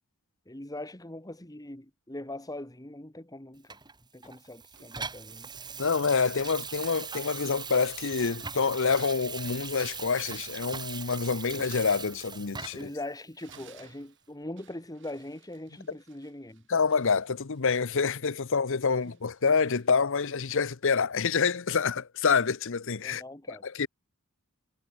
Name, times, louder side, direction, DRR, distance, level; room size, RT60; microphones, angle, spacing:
voice 1, 0.5-3.8 4.1-5.5 12.7-16.6 23.0-23.6, left 1 dB, 15° left, 1.9 m, -41 dB
Water tap faucet / Sink (filling or washing), 3.7-13.0 13.5-13.6, right 6 dB, 20° right, 2.2 m, -40 dB
sound 1, 4.7-6.3 6.8-12.8 13.2-21.0, right 7 dB, 55° right, 5.3 m, -63 dB
voice 2, 5.8-12.9 16.7-23.2 23.5-23.9, left 5 dB, 60° left, 0.8 m, -27 dB
head